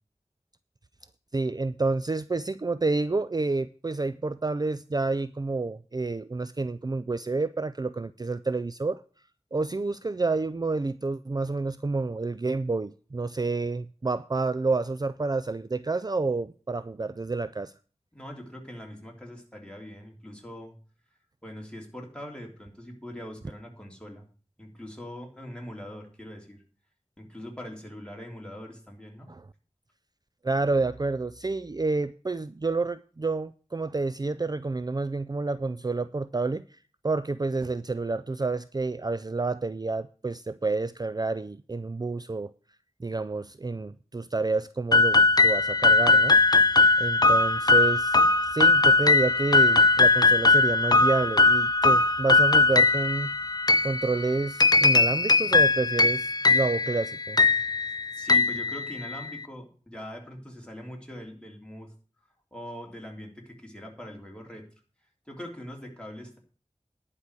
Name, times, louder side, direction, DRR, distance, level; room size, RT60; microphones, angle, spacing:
voice 1, 1.3-9.0 9.5-17.7 29.3-29.4 30.4-36.6 37.0-42.5 43.0-46.4 47.0-53.3 53.8-57.4, right 3 dB, 35° right, 0.4 m, -29 dB
voice 2, 18.1-20.7 21.4-24.2 24.6-26.6 27.2-29.3 58.1-61.9 62.5-64.7 65.3-66.4, equal, 10° left, 3.2 m, -42 dB
sound 1, 44.9-59.4, left 3 dB, 35° left, 0.5 m, -20 dB
10.5 x 5.0 x 8.3 m
wide cardioid pair, 45°, 12 cm